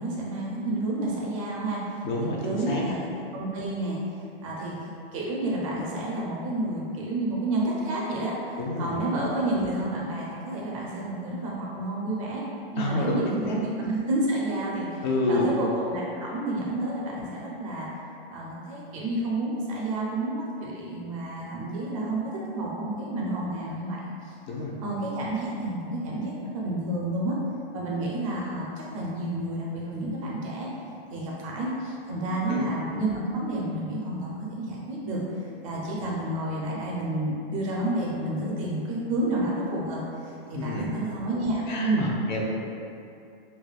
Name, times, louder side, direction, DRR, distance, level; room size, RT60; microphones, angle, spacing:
voice 1, 0.0-4.0 4.4-4.8 5.1-12.4 12.7-17.9 18.3-24.1 24.8-27.4 27.7-30.7 31.1-35.2 35.6-40.0 40.5-42.1, right 1 dB, 35° right, -4 dB, 0.4 m, -30 dB
voice 2, 2.0-2.8 8.6-9.0 12.8-13.6 15.0-15.5 24.5-24.7 32.5-32.7 40.5-40.9 41.7-42.4, left 2 dB, 50° left, -3 dB, 0.5 m, -28 dB
3.2 x 2.2 x 2.3 m, 2.6 s
hypercardioid pair, 150°, 30 cm